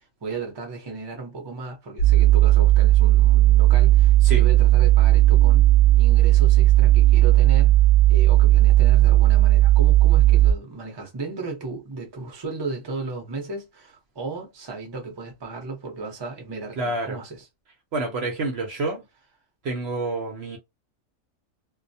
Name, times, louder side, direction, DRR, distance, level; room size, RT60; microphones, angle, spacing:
voice 1, 0.0-5.7 6.0-7.7 8.1-17.5, right 3 dB, 25° right, 0.6 m, -35 dB
sound 1, 2.0-10.5, right 15 dB, 65° left, 0.7 m, -15 dB
voice 2, 16.8-17.2 17.9-19.0 19.6-20.6, right 2 dB, 60° right, 0.8 m, -28 dB
2.3 x 2.1 x 2.6 m
omnidirectional pair, 1.4 m